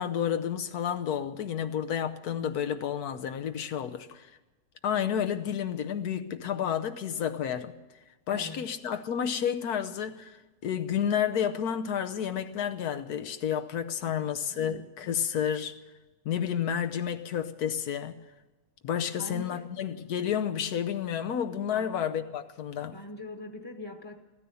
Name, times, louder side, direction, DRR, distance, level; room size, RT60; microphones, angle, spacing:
voice 1, 0.0-4.3 4.8-7.7 8.3-15.8 16.2-18.2 18.8-23.0, left 8 dB, 90° left, 1.3 m, -30 dB
voice 2, 8.3-8.7 14.5-15.2 19.0-19.7 21.7-21.9 22.8-24.2, left 1 dB, 20° left, 0.9 m, -43 dB
15.5 x 13.5 x 6.9 m
omnidirectional pair, 1.6 m